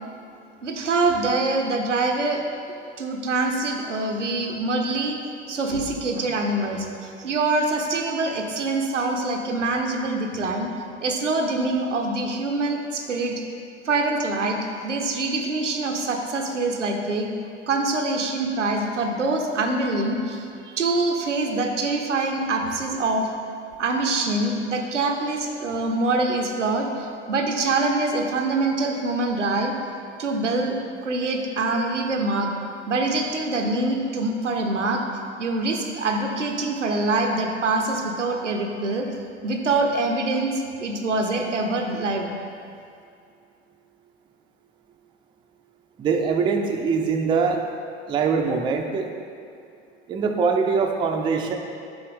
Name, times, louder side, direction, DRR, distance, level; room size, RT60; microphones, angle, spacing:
voice 1, 0.6-2.4 3.0-5.2 5.5-10.7 11.0-13.4 13.8-17.3 17.7-20.5 20.8-23.3 23.8-29.8 30.2-30.8 31.0-32.5 32.9-35.0 35.4-39.1 39.4-42.3, right 2 dB, 90° right, 3 dB, 0.6 m, -24 dB
voice 2, 46.0-47.6 48.1-49.1 50.1-51.6, right 5 dB, 15° right, 3 dB, 0.3 m, -23 dB
6.9 x 4.1 x 3.4 m, 2.4 s
figure-of-eight pair, 75°, 35 cm